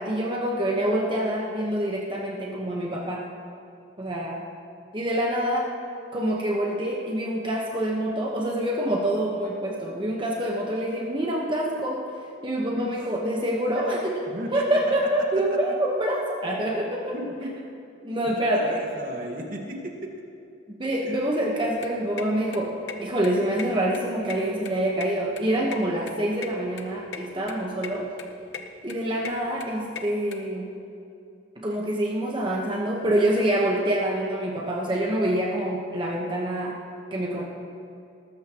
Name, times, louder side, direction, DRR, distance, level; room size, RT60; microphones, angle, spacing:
voice 1, 0.0-3.2 4.0-4.4 4.9-5.7 6.1-12.0 12.4-14.1 14.5-17.1 18.0-18.8 20.7-22.7 23.0-28.1 28.8-30.7 31.6-36.7 37.1-37.4, right 1 dB, 25° right, -2 dB, 1.2 m, -26 dB
voice 2, 13.7-14.8 15.2-15.3 17.1-17.5 18.5-20.1 21.0-21.2, equal, 45° right, 1 dB, 1.7 m, -35 dB
sound 1, 21.6-30.4, left 5 dB, 70° left, 1.0 m, -40 dB
19.5 x 14.0 x 3.0 m, 2.6 s
head